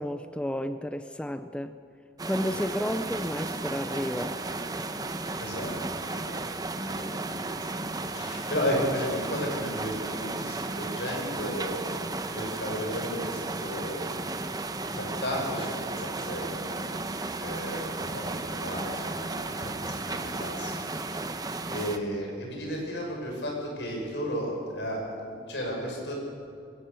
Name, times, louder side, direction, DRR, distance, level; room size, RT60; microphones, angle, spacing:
voice 1, 0.0-1.7 2.2-4.4, equal, 5° left, 10 dB, 0.5 m, -31 dB
sound 1, 2.2-22.0, right 2 dB, 20° right, 0.9 m, -34 dB
voice 2, 5.4-6.4 6.8-7.8 8.1-11.8 12.2-14.1 14.5-14.6 14.9-16.8 17.4-20.7 21.7-26.1, equal, 80° left, 0 dB, 6.1 m, -34 dB
21.5 x 17.5 x 7.0 m, 2.5 s
head